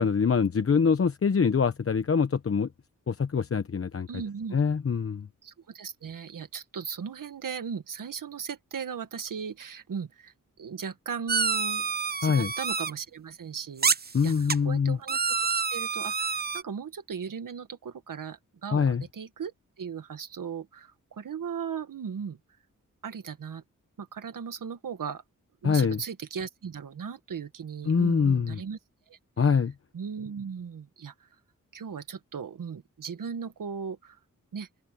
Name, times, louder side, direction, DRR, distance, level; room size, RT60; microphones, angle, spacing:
voice 1, 0.0-2.7 3.1-4.1 4.5-5.3 12.2-12.5 14.1-15.0 18.7-19.0 25.6-26.0 27.9-28.6 29.4-29.7, left 6 dB, 45° left, 0.9 m, -24 dB
voice 2, 4.1-4.6 5.4-10.3 10.6-11.9 12.2-22.4 23.0-23.6 24.0-25.2 25.6-28.8 29.1-29.2 29.9-31.3 31.7-34.2 34.5-34.7, right 6 dB, 80° right, 1.9 m, -37 dB
sound 1, 11.3-12.9 13.8-14.6 15.1-16.6, right 5 dB, 30° right, 0.7 m, -28 dB
open air
wide cardioid pair, 85°, 32 cm